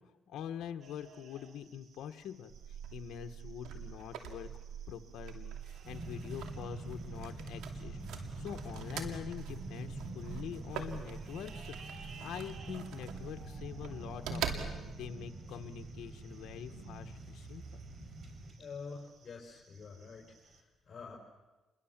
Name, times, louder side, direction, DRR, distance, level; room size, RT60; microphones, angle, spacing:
voice 1, 0.3-2.5 2.9-4.5 4.9-17.6, left 9 dB, 80° left, 6 dB, 1.2 m, -45 dB
sound 1, 0.8-20.6, right 6 dB, 60° right, 2.9 m, -60 dB
sound 2, 2.5-15.1, right 7 dB, 85° right, 2.7 m, -45 dB
sound 3, 5.8-18.5, right 2 dB, 40° right, 6.0 m, -45 dB
voice 2, 18.6-21.2, left 5 dB, 40° left, -2 dB, 5.3 m, -47 dB
29.5 x 22.0 x 7.4 m, 1.2 s
cardioid pair, 90°, 0 cm